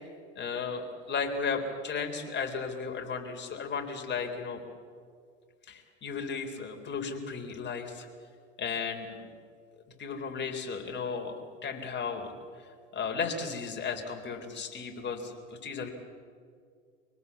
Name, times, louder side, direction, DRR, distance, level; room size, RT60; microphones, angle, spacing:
voice 1, 0.4-4.6 5.7-8.1 8.6-9.3 10.0-12.3 12.9-15.9, left 5 dB, 30° left, 4 dB, 3.8 m, -35 dB
24.5 x 19.0 x 8.4 m, 2.2 s
hypercardioid pair, 100°, 36 cm